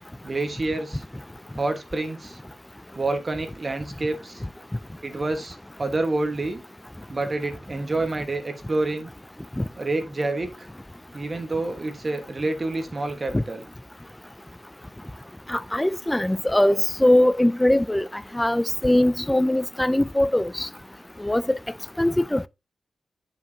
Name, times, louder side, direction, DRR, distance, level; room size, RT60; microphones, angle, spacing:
voice 1, 0.2-1.0 1.6-2.4 2.9-4.3 5.0-6.6 7.1-9.1 9.8-10.7 11.1-13.6, right 2 dB, 35° right, 1.3 m, -28 dB
voice 2, 15.5-18.1 18.3-20.7 21.2-21.6 22.0-22.5, left 1 dB, 10° left, 0.4 m, -21 dB
9.2 x 5.1 x 2.7 m
cardioid pair, 75°, 0 cm